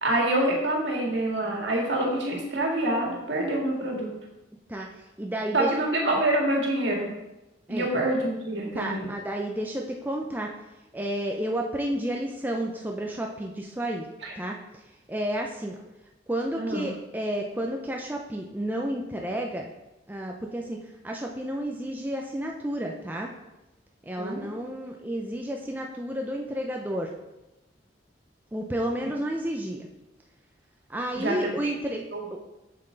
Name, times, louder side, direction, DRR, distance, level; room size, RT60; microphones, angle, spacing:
voice 1, 0.0-4.1 5.5-7.1 7.7-9.1 14.2-14.3 16.6-16.9 24.2-24.4 31.2-31.5 32.1-32.2, right 1 dB, 70° right, -1 dB, 1.9 m, -26 dB
voice 2, 4.7-5.8 7.7-7.9 8.7-10.5 10.9-14.1 14.4-14.6 15.1-15.8 16.3-19.7 20.1-20.8 21.0-23.3 24.0-27.1 28.5-29.9 30.9-32.1, right 1 dB, 10° right, 0 dB, 0.5 m, -31 dB
7.2 x 6.7 x 3.8 m, 0.98 s
head